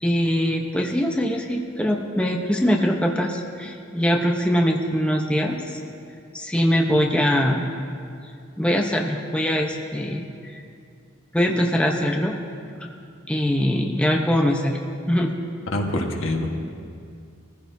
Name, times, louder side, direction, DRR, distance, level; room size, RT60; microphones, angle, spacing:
voice 1, 0.0-5.8 6.3-7.7 8.6-10.6 11.3-12.4 12.8-12.9 13.3-14.8 15.1-15.3, equal, 5° left, 1 dB, 0.8 m, -22 dB
voice 2, 15.7-16.5, left 1 dB, 80° left, 2 dB, 1.4 m, -25 dB
20.0 x 15.0 x 2.7 m, 2.3 s
head